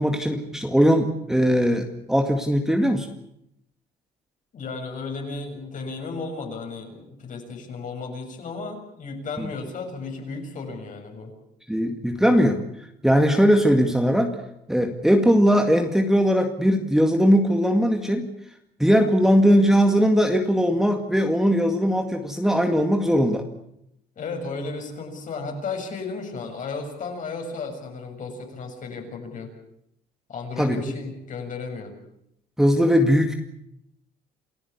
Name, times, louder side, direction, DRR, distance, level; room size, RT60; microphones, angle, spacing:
voice 1, 0.0-3.1 11.7-12.6 13.0-14.3 14.7-18.3 18.8-23.4 30.6-30.8 32.6-33.3, equal, 5° right, 4 dB, 2.1 m, -19 dB
voice 2, 4.5-11.3 24.2-29.5 30.3-32.0, left 4 dB, 50° left, 3 dB, 7.1 m, -34 dB
28.5 x 15.5 x 8.4 m, 0.78 s
cardioid pair, 110°, 17 cm